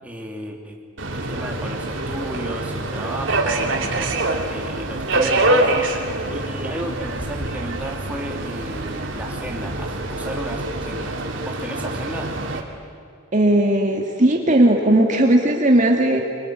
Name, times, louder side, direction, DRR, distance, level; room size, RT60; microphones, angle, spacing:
voice 1, 0.0-0.8 1.1-3.7 4.5-5.8 6.3-12.4, right 1 dB, 5° right, -1 dB, 3.2 m, -33 dB
Subway metro underground, 1.0-12.6, right 2 dB, 65° right, 3.1 m, -25 dB
voice 2, 13.3-16.2, right 1 dB, 35° right, 1 dB, 2.2 m, -17 dB
24.5 x 24.0 x 9.6 m, 2.2 s
head